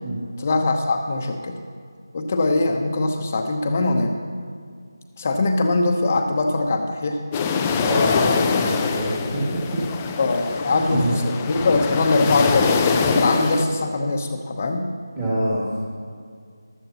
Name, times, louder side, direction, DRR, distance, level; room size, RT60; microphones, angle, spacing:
voice 1, 0.4-1.6 2.1-4.2 5.2-7.2 7.8-8.4 10.2-14.9, left 2 dB, 35° left, 4 dB, 0.9 m, -22 dB
sound 1, 7.3-13.7, left 5 dB, 15° left, 0.4 m, -24 dB
voice 2, 7.6-9.8 10.7-11.1 15.2-15.6, right 1 dB, 15° right, -11 dB, 2.1 m, -26 dB
15.0 x 12.0 x 2.9 m, 2.1 s
figure-of-eight pair, 165°, 2 cm